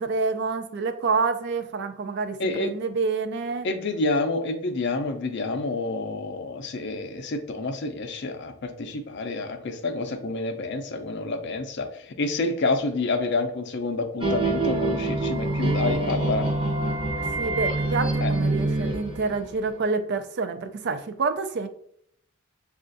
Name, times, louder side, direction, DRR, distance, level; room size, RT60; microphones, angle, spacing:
voice 1, 0.0-3.7 17.4-21.7, right 4 dB, 55° right, 9 dB, 0.4 m, -27 dB
voice 2, 2.4-2.7 3.6-16.5 18.2-18.3, left 3 dB, 55° left, 6 dB, 0.5 m, -28 dB
sound 1, 14.2-19.8, right 2 dB, 25° right, 0.7 m, -26 dB
6.5 x 2.4 x 2.5 m, 0.69 s
head